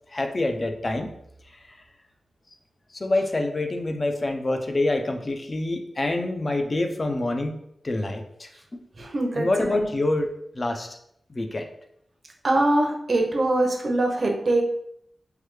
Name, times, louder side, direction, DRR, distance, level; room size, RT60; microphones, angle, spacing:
voice 1, 0.1-1.1 2.9-7.6 7.8-8.9 9.3-11.0 11.3-11.7, left 2 dB, 35° left, 5 dB, 0.4 m, -26 dB
voice 2, 9.0-9.9 12.4-14.6, right 2 dB, 50° right, 2 dB, 0.6 m, -23 dB
3.2 x 2.2 x 3.1 m, 0.73 s
wide cardioid pair, 95°, 0 cm